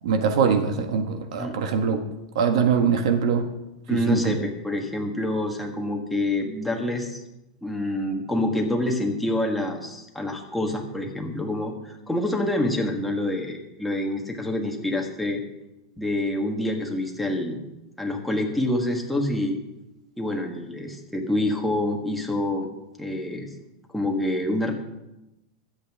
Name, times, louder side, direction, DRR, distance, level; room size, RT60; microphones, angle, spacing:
voice 1, 0.0-2.0 2.3-3.5 4.1-4.4, right 6 dB, 70° right, 6 dB, 1.6 m, -22 dB
voice 2, 3.9-7.2 7.6-15.4 16.0-17.6 18.0-19.6 20.2-22.7 23.0-23.5 23.9-24.7, left 1 dB, ahead, 0 dB, 1.5 m, -27 dB
22.5 x 8.1 x 3.6 m, 0.95 s
supercardioid pair, 160°, 3 cm